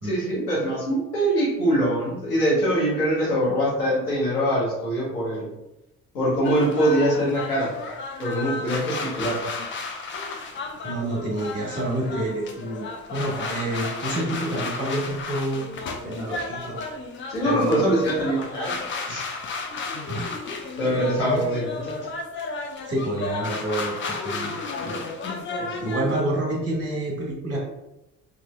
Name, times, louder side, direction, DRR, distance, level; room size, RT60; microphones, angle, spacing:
voice 1, 0.0-5.5 6.1-7.7 8.2-9.4 17.3-18.7 19.1-19.3 20.8-21.9 25.6-26.0, right 1 dB, 85° left, -7 dB, 1.0 m, -23 dB
sound 1, 6.4-26.2, left 3 dB, 30° left, 0.3 m, -33 dB
voice 2, 10.8-15.7 16.0-16.8 17.4-17.8 20.1-20.4 20.9-21.4 22.9-25.1 25.8-27.6, right 1 dB, 30° right, -3 dB, 1.3 m, -28 dB
2.6 x 2.6 x 2.2 m, 0.91 s
figure-of-eight pair, 45°, 45 cm